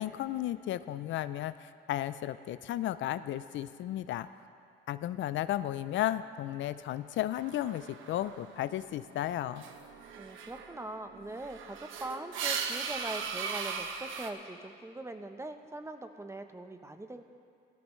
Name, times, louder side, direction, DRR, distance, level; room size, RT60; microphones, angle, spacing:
voice 1, 0.0-4.3 4.9-9.6, left 13 dB, 75° left, 14 dB, 0.4 m, -34 dB
sound 1, 7.3-8.7 9.0-14.3, right 6 dB, 80° right, 0.9 m, -39 dB
voice 2, 10.2-17.2, right 2 dB, 15° right, 7 dB, 0.8 m, -42 dB
17.5 x 13.5 x 3.2 m, 2.3 s
cardioid pair, 90°, 20 cm